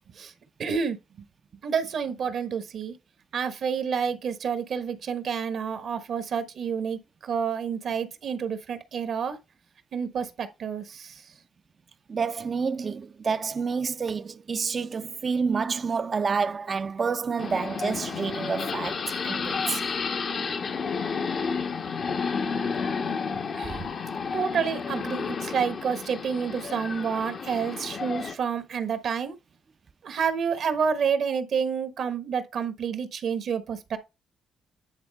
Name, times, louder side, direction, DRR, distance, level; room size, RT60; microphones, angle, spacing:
voice 1, 0.6-1.0 1.6-3.0 3.3-9.4 9.9-11.2 23.6-23.9 24.3-29.3 30.0-34.0, right 6 dB, 65° right, 1.2 m, -29 dB
voice 2, 12.1-19.8, right 5 dB, 45° right, 0.5 m, -29 dB
sound 1, 17.4-28.4, left 5 dB, 55° left, 1.0 m, -31 dB
9.6 x 3.9 x 3.5 m
supercardioid pair, 55°, 0 cm